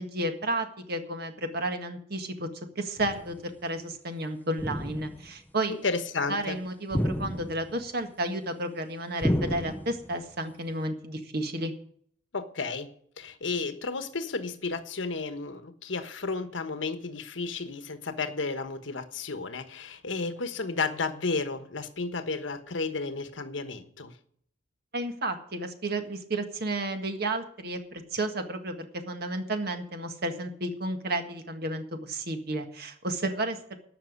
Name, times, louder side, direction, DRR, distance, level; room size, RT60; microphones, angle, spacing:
voice 1, 0.0-2.5 2.8-5.8 6.3-11.7 24.9-33.8, right 1 dB, 55° right, 6 dB, 1.7 m, -32 dB
sound 1, 3.0-3.4 4.6-5.3 6.9-7.8 9.2-10.2, equal, 10° left, 0.5 m, -31 dB
voice 2, 5.8-6.6 12.3-12.9 13.2-24.2, left 4 dB, 85° left, 10 dB, 1.3 m, -32 dB
13.5 x 6.1 x 9.5 m, 0.63 s
head